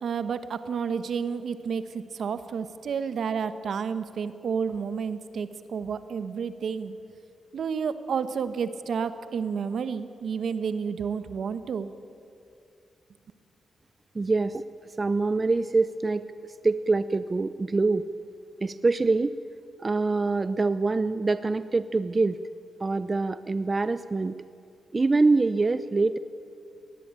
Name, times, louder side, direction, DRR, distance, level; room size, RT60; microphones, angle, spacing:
voice 1, 0.0-6.9 7.5-11.9, right 6 dB, 70° right, 12 dB, 1.1 m, -30 dB
voice 2, 14.1-14.6 15.0-16.3 16.6-18.1 18.6-19.4 19.8-22.4 22.8-24.4 24.9-26.2, right 3 dB, 35° right, 14 dB, 0.7 m, -24 dB
21.0 x 18.0 x 9.0 m, 2.6 s
cardioid pair, 55°, 0 cm